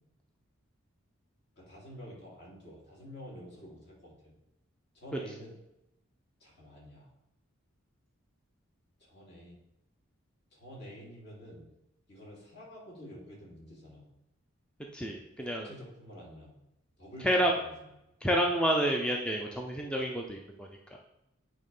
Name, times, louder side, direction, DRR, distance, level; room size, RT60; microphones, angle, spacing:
voice 1, 1.6-4.3 4.9-5.5 6.4-7.1 9.0-9.6 10.5-11.6 12.1-14.0 15.4-16.5 17.0-17.9, equal, 50° left, -4 dB, 2.7 m, -49 dB
voice 2, 14.9-15.7 17.2-17.5 18.2-21.0, equal, 5° left, 1 dB, 0.5 m, -29 dB
8.7 x 3.3 x 5.4 m, 0.86 s
head